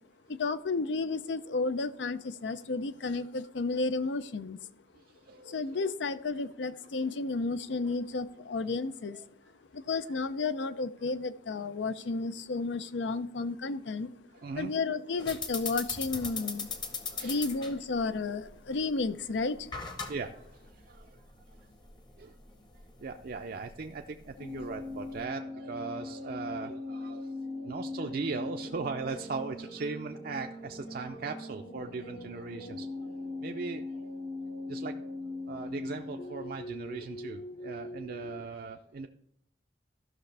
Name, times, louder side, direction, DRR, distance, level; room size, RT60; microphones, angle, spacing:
voice 1, 0.3-4.6 5.5-9.2 9.7-14.1 14.6-16.7 17.2-19.7, left 3 dB, 85° left, 13 dB, 0.5 m, -32 dB
voice 2, 5.3-5.6 9.1-9.2 14.4-14.7 17.1-17.5 20.1-21.2 22.2-22.3 23.0-27.3 27.6-32.9 33.4-34.1 34.7-34.9 35.5-39.1, right 4 dB, 55° right, 4 dB, 0.4 m, -39 dB
sound 1, 15.2-25.2, left 4 dB, 25° left, 0.8 m, -41 dB
sound 2, 24.4-38.4, left 2 dB, 60° left, 1.0 m, -40 dB
14.0 x 5.9 x 3.3 m, 0.71 s
head